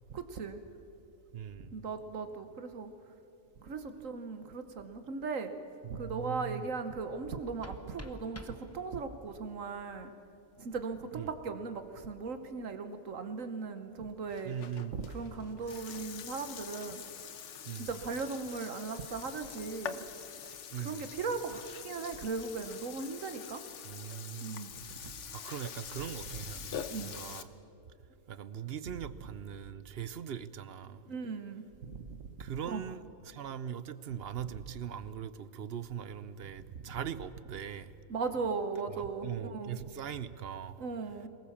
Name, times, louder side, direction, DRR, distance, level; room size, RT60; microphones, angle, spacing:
voice 1, 0.1-0.6 1.7-2.9 3.6-5.5 5.9-10.1 10.6-14.5 15.0-17.0 17.8-20.0 20.8-23.6 24.4-24.7 26.9-27.1 31.1-32.2 32.7-32.8 38.1-39.8 40.8-41.3, right 4 dB, 75° right, 8 dB, 1.5 m, -38 dB
voice 2, 1.3-1.8 5.8-6.7 11.1-11.3 14.4-15.1 17.6-17.9 20.7-21.1 23.8-27.6 28.3-31.0 32.4-38.0 38.9-40.8, right 8 dB, 55° right, 15 dB, 0.9 m, -41 dB
sound 1, 7.2-9.2, left 1 dB, 15° left, 0.9 m, -51 dB
Burping eructation, 14.3-27.4, left 7 dB, 65° left, 1.1 m, -45 dB
23.0 x 20.5 x 7.2 m, 2.8 s
omnidirectional pair, 1.4 m